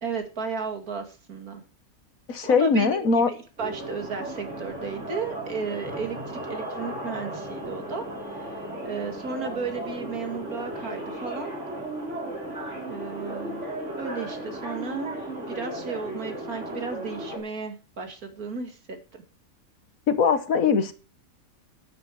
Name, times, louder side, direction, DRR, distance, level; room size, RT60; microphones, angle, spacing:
voice 1, 0.0-1.6 2.4-8.1 8.3-8.5 8.8-11.5 12.9-13.6 14.0-15.2 15.5-19.2, right 5 dB, 80° right, 5 dB, 2.7 m, -34 dB
voice 2, 2.3-3.3 20.1-20.9, left 5 dB, 70° left, 11 dB, 1.6 m, -21 dB
sound 1, 3.6-17.4, right 1 dB, 50° right, 4.4 m, -35 dB
12.0 x 9.0 x 4.8 m, 0.35 s
omnidirectional pair, 1.5 m